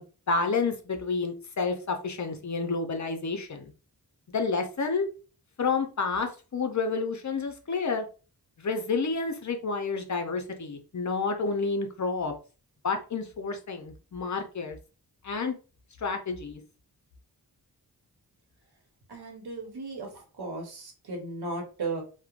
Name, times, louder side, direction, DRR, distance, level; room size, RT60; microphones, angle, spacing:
voice 1, 0.0-3.7 4.3-5.1 5.6-8.1 8.6-12.3 12.8-14.8 15.2-15.5 16.0-16.6, left 4 dB, 50° left, 5 dB, 0.6 m, -30 dB
voice 2, 19.1-22.0, right 3 dB, 90° right, 2 dB, 0.9 m, -36 dB
3.0 x 2.1 x 2.4 m, 0.35 s
wide cardioid pair, 75°, 37 cm